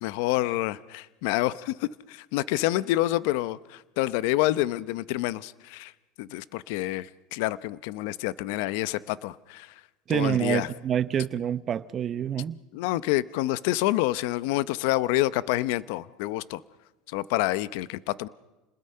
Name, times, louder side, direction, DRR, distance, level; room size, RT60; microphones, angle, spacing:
voice 1, 0.0-5.9 6.2-9.7 10.1-10.7 12.7-16.6 17.1-18.3, left 16 dB, 70° left, 0.7 m, -28 dB
voice 2, 10.1-12.6, right 9 dB, 35° right, 0.9 m, -27 dB
30.0 x 20.5 x 5.6 m
supercardioid pair, 130°, 0 cm